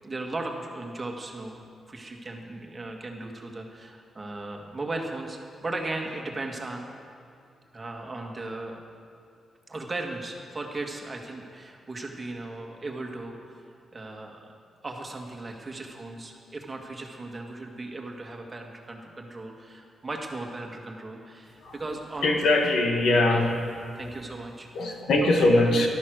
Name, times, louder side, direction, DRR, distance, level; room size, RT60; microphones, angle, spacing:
voice 1, 0.0-6.9 7.7-8.8 9.7-13.7 13.9-14.5 14.8-22.3 24.0-24.7 25.2-25.3, right 2 dB, 25° right, 1 dB, 1.9 m, -37 dB
voice 2, 22.2-23.6 24.7-25.9, left 2 dB, 75° left, 2 dB, 1.8 m, -22 dB
14.0 x 12.0 x 6.4 m, 2.5 s
cardioid pair, 100°, 0 cm